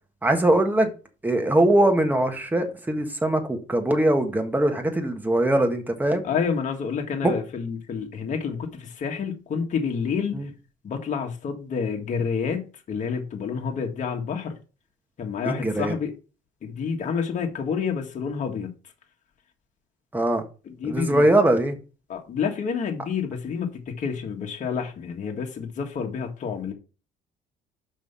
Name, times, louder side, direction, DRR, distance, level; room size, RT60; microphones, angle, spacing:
voice 1, 0.2-0.9 1.2-6.2 7.2-7.3 10.3-10.5 15.4-15.9 20.1-20.4 20.8-21.8, right 1 dB, 10° right, 1.6 m, -21 dB
voice 2, 6.2-10.5 10.8-14.5 15.2-16.1 16.6-18.7 20.8-21.2 22.1-26.7, left 6 dB, 45° left, 1.6 m, -29 dB
6.0 x 5.6 x 5.7 m
cardioid pair, 110°, 17 cm